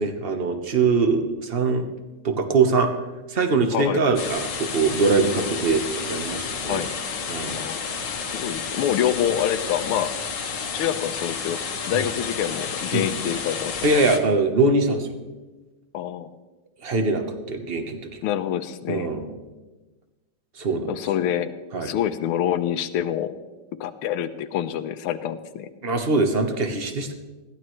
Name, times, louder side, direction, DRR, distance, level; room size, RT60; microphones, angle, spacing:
voice 1, 0.0-1.9 2.2-2.9 3.3-5.8 6.1-6.9 7.3-7.6 11.9-12.1 12.9-13.1 13.8-15.1 16.8-18.2 18.9-19.4 20.6-20.9 21.7-21.9 25.8-27.1, right 3 dB, 35° right, 5 dB, 1.1 m, -22 dB
sound 1, 4.2-14.2, left 6 dB, 60° left, 1.8 m, -31 dB
voice 2, 7.5-7.8 8.3-10.1 10.7-11.6 11.9-14.0 15.9-16.3 18.2-19.1 20.9-21.5 21.8-23.3 23.8-25.7, left 10 dB, 90° left, 11 dB, 1.6 m, -26 dB
20.5 x 15.0 x 3.2 m, 1.2 s
omnidirectional pair, 2.4 m